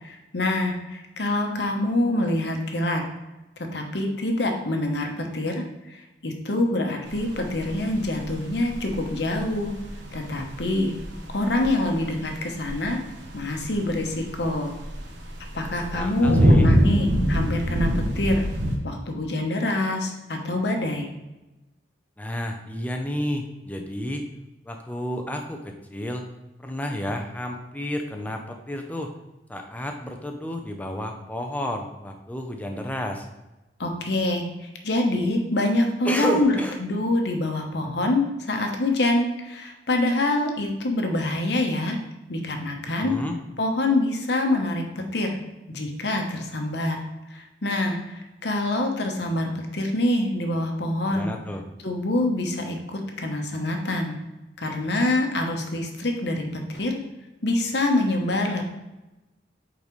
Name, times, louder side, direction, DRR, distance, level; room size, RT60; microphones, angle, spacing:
voice 1, 0.0-3.0 3.7-9.7 10.1-10.9 11.3-13.0 13.3-14.7 15.5-18.5 18.8-21.1 33.8-36.5 36.8-42.0 42.3-43.1 43.6-44.8 45.1-45.4 45.7-47.0 47.3-51.3 51.8-54.1 54.6-57.0 57.4-58.6, left 1 dB, 65° left, 3 dB, 1.0 m, -25 dB
sound 1, 7.1-18.8, equal, 85° right, 1.0 m, -25 dB
voice 2, 15.7-16.7 22.2-24.3 24.6-26.3 26.6-29.1 29.5-33.3 36.0-36.8 42.8-43.4 51.1-51.6, equal, 10° left, 3 dB, 0.6 m, -31 dB
8.4 x 4.0 x 3.1 m, 1.0 s
head